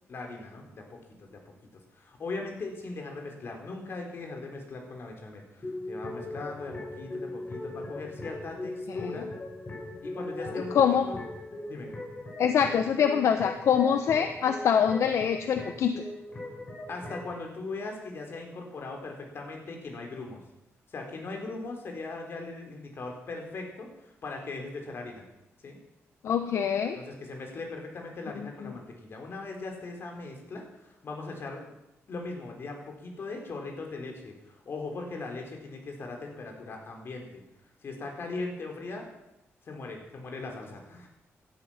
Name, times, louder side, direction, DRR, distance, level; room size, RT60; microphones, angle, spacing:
voice 1, 0.1-1.4 1.9-9.3 10.0-11.2 11.6-11.9 16.9-20.4 20.9-25.2 25.6-25.8 26.9-31.8 32.1-37.4 37.8-39.1 39.6-41.1, left 3 dB, 50° left, 2 dB, 4.3 m, -39 dB
sound 1, 5.6-17.4, left 1 dB, 30° left, 4.8 m, -40 dB
voice 2, 10.7-11.1 12.4-16.0 26.2-27.0, left 8 dB, 75° left, 8 dB, 1.0 m, -24 dB
18.0 x 12.5 x 5.8 m, 0.90 s
wide cardioid pair, 140°, 5 cm